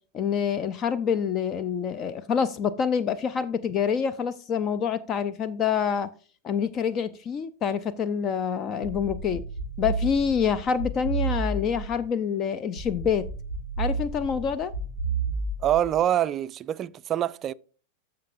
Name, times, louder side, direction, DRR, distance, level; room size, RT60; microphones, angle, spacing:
voice 1, 0.1-6.1 6.4-9.4 9.8-13.3 13.8-14.7, left 7 dB, 30° left, 0.5 m, -26 dB
sound 1, 8.8-12.1 12.8-16.1, right 4 dB, 80° left, 2.8 m, -32 dB
voice 2, 15.6-17.5, right 11 dB, 30° right, 0.3 m, -25 dB
14.0 x 5.7 x 2.5 m
figure-of-eight pair, 90°, 0 cm